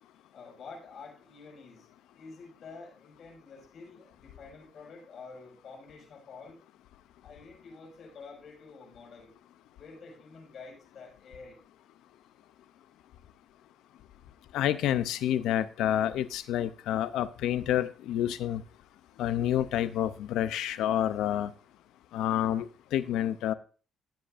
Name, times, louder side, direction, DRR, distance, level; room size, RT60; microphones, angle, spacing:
voice 1, 0.3-6.6 7.2-9.3 9.8-11.6, left 4 dB, 60° left, -2 dB, 5.7 m, -49 dB
voice 2, 14.5-18.6 19.2-21.5 22.1-22.7 22.9-23.5, left 11 dB, 90° left, 14 dB, 0.5 m, -28 dB
15.0 x 7.9 x 2.5 m, 0.37 s
cardioid pair, 90°, 0 cm